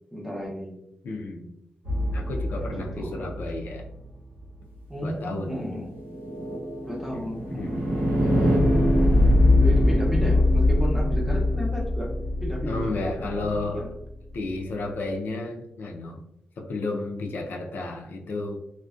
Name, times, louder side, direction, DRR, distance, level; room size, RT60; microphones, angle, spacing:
voice 1, 0.1-0.8 2.6-3.3 4.9-5.9 6.9-7.8 8.2-8.7 9.6-12.1 12.4-13.9, equal, 5° right, -2 dB, 0.6 m, -33 dB
voice 2, 1.0-1.5 2.1-3.9 5.0-5.8 7.1-7.9 12.6-13.9 14.3-16.2 16.6-18.6, left 2 dB, 75° left, 1 dB, 0.4 m, -32 dB
sound 1, 1.8-4.0 5.8-13.9, left 1 dB, 85° right, 0.9 m, -23 dB
2.5 x 2.1 x 2.3 m, 0.84 s
cardioid pair, 95°, 3 cm